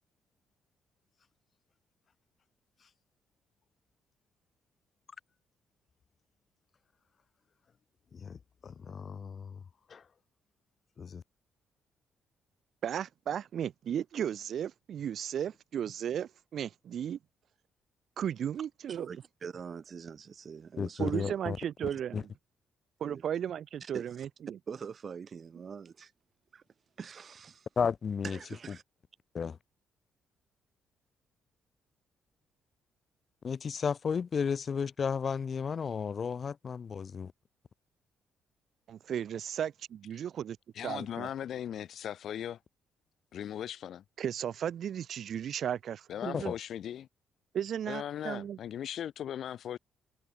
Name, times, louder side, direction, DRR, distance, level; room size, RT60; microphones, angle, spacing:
voice 1, 8.1-9.6 9.9-10.0 11.0-11.2 20.8-21.6 22.1-22.2 27.8-28.4 29.3-29.6 33.4-37.3 46.3-46.6, left 6 dB, 45° left, 0.3 m, -33 dB
voice 2, 12.8-17.2 18.2-19.1 21.0-22.3 23.0-24.6 38.9-40.6 40.8-41.3 44.2-46.5 47.5-48.6, right 9 dB, 65° right, 0.8 m, -35 dB
voice 3, 18.9-21.3 23.0-23.2 23.8-24.3 24.7-26.1 26.5-26.6 27.0-27.7 28.2-28.8, right 6 dB, 45° right, 2.1 m, -44 dB
voice 4, 40.7-42.6 43.3-44.0 46.1-47.1 47.9-49.8, left 10 dB, 70° left, 1.3 m, -38 dB
cardioid pair, 90°, 0 cm